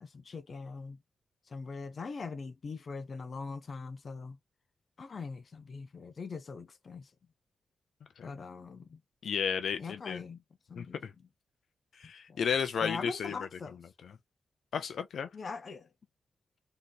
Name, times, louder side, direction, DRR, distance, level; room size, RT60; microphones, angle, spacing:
voice 1, 0.0-1.0 1.5-4.4 5.0-7.1 8.2-9.0 9.8-10.4 10.7-11.0 12.3-12.4 12.8-13.8 15.3-15.9, left 4 dB, 45° left, 0.9 m, -42 dB
voice 2, 9.2-10.2 10.8-11.1 12.0-13.3 14.0-14.1 14.7-15.3, left 7 dB, 80° left, 0.7 m, -33 dB
4.0 x 3.2 x 4.0 m
wide cardioid pair, 140°, 0 cm